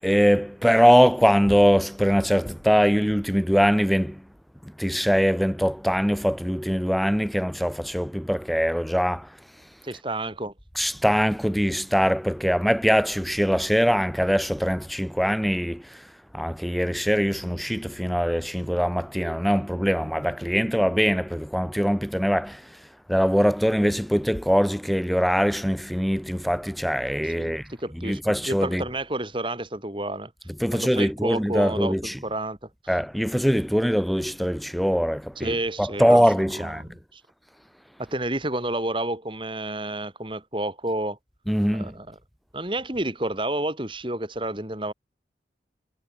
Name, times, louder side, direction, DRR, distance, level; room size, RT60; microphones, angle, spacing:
voice 1, 0.0-4.3 4.6-9.4 10.8-28.9 30.6-32.2 32.9-36.9 41.5-42.0, equal, ahead, 5.7 m, -22 dB
voice 2, 9.8-10.5 27.4-28.2 28.4-30.3 30.7-31.9 32.2-32.6 35.4-36.2 36.8-37.2 38.0-41.2 41.7-42.1 42.5-44.9, right 1 dB, 30° right, 3.3 m, -30 dB
head